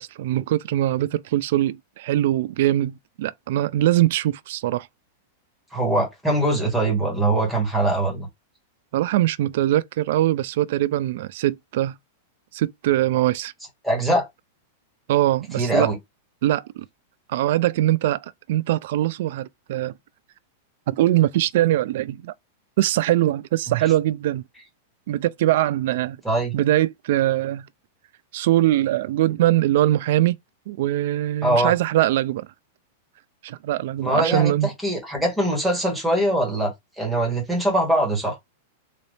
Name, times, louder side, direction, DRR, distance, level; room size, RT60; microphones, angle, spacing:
voice 1, 0.0-4.9 8.9-12.0 12.5-13.5 15.1-15.9 16.4-16.9 17.3-19.9 20.9-22.3 22.8-24.4 25.1-26.2 26.5-27.7 28.3-30.4 30.7-32.5 33.4-34.7, right 14 dB, 60° right, 0.3 m, -22 dB
voice 2, 5.7-8.3 13.8-14.3 15.6-16.0 23.7-23.8 26.2-26.5 31.4-31.7 34.0-38.4, right 1 dB, ahead, 1.6 m, -22 dB
4.0 x 2.7 x 3.3 m
supercardioid pair, 155°, 0 cm